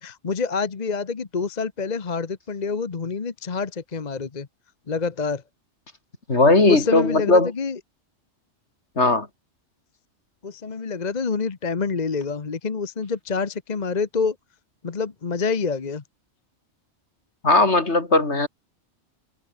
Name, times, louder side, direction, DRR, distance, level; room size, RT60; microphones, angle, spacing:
voice 1, 0.0-4.5 4.9-5.4 6.7-7.8 10.4-14.3 14.8-16.0, left 5 dB, 40° left, 1.1 m, -27 dB
voice 2, 6.3-7.5 9.0-9.3 17.4-18.5, left 2 dB, 70° left, 4.1 m, -18 dB
omnidirectional pair, 1.2 m